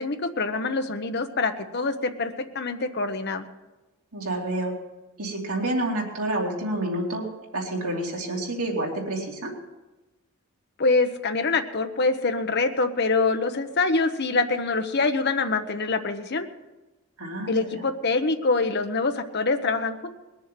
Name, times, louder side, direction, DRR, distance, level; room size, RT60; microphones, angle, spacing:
voice 1, 0.0-3.5 10.8-16.5 17.5-20.1, left 3 dB, 50° left, 7 dB, 1.0 m, -25 dB
voice 2, 4.1-4.7 5.2-7.2 7.5-9.5 17.2-17.8, right 1 dB, 90° right, -1 dB, 3.0 m, -28 dB
20.5 x 7.1 x 7.6 m, 1.1 s
head